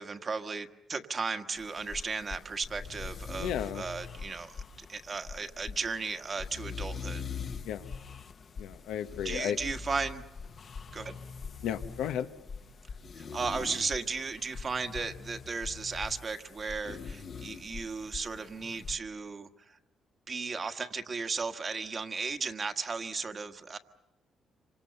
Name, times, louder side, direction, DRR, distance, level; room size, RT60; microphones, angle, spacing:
voice 1, 0.0-7.3 9.2-10.2 10.9-11.2 13.2-19.8 20.3-23.8, right 4 dB, 40° right, 7 dB, 1.5 m, -35 dB
sound 1, 1.6-19.0, left 5 dB, 50° left, 1.2 m, -43 dB
voice 2, 3.4-3.8 7.6-7.9 8.6-9.6 11.6-12.3, left 9 dB, 90° left, 9 dB, 1.2 m, -33 dB
27.0 x 25.0 x 6.9 m, 0.99 s
cardioid pair, 90°, 0 cm